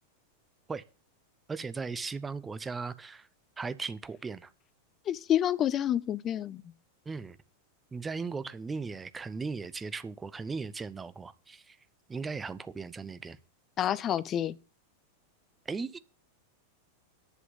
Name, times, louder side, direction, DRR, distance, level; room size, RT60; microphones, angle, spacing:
voice 1, 1.5-3.3 3.6-4.5 7.0-7.4 7.9-11.8 12.1-13.4 15.6-16.0, right 4 dB, 15° right, 0.9 m, -37 dB
voice 2, 5.1-6.6 13.8-14.5, left 10 dB, 30° left, 0.7 m, -28 dB
11.0 x 6.2 x 7.2 m
figure-of-eight pair, 90°, 0 cm